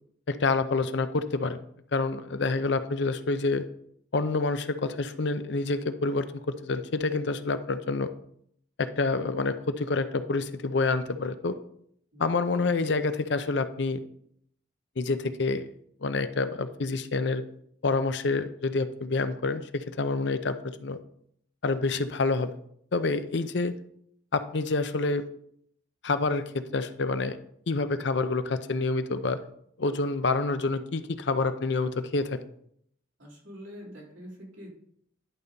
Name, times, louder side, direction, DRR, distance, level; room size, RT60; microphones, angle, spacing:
voice 1, 0.3-1.6 1.9-3.7 4.1-8.1 8.8-11.6 12.2-14.0 15.0-15.7 16.0-17.4 17.8-21.0 21.6-22.5 22.9-23.8 24.3-25.3 26.0-27.4 27.7-29.4 29.8-32.4, left 3 dB, 60° left, 10 dB, 0.6 m, -27 dB
voice 2, 12.1-12.8 33.2-34.7, equal, 80° right, -4 dB, 3.5 m, -46 dB
11.0 x 4.0 x 5.2 m, 0.69 s
head